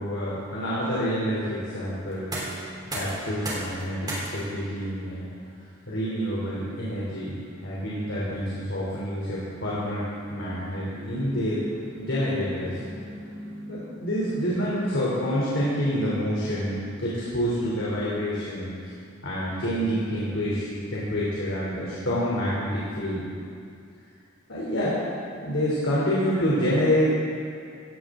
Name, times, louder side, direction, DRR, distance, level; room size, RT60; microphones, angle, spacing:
voice 1, 0.0-2.4 2.9-5.2 5.9-7.4 7.6-10.0 10.3-11.6 11.9-12.8 13.7-18.9 19.2-23.3 24.5-25.0 25.4-27.1, equal, 75° left, -8 dB, 3.4 m, -27 dB
sound 1, 2.1-13.8, right 1 dB, 20° right, 3.4 m, -41 dB
sound 2, 10.4-16.7, equal, 65° right, 3.6 m, -43 dB
17.5 x 16.0 x 3.8 m, 2.4 s
head